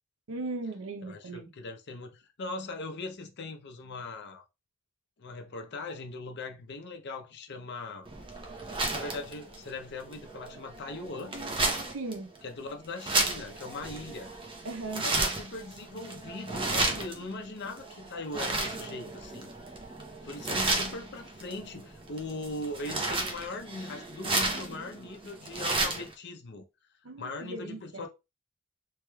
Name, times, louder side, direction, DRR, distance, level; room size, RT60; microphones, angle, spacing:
voice 1, 0.3-1.5 11.9-12.3 14.6-15.1 27.0-28.1, right 3 dB, 70° right, 0.6 m, -37 dB
voice 2, 1.0-4.4 5.2-8.1 8.4-11.4 12.4-14.3 15.0-19.5 20.2-26.6 27.2-28.1, left 2 dB, 55° left, 0.6 m, -40 dB
sound 1, 8.0-26.1, right 2 dB, 25° right, 0.6 m, -33 dB
3.2 x 3.1 x 2.2 m
head